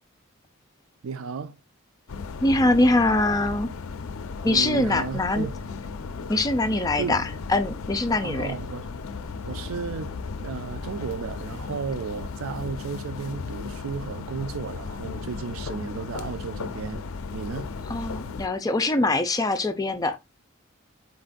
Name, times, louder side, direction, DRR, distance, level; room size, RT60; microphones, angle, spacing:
voice 1, 1.0-1.6 4.4-5.5 7.0-7.2 8.2-8.9 9.5-17.1 17.3-17.7, right 5 dB, 75° right, 0.4 m, -34 dB
sound 1, 2.1-18.5, left 4 dB, 90° left, 0.4 m, -35 dB
voice 2, 2.4-3.7 4.4-5.5 6.3-8.5 17.9-20.2, left 2 dB, 20° left, 0.4 m, -23 dB
4.2 x 2.5 x 3.7 m
head